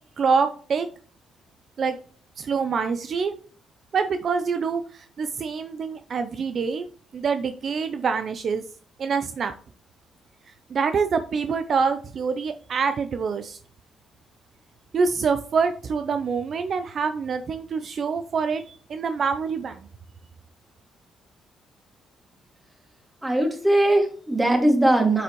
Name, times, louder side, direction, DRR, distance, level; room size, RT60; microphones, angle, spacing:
voice 1, 0.2-0.9 1.8-2.0 2.4-3.3 3.9-6.9 7.1-8.6 9.0-9.5 10.7-13.6 14.9-19.9, right 5 dB, 55° right, 9 dB, 0.6 m, -25 dB
voice 2, 23.2-25.2, right 1 dB, 10° right, 2 dB, 2.4 m, -20 dB
8.0 x 6.9 x 3.1 m, 0.43 s
cardioid pair, 90°, 0 cm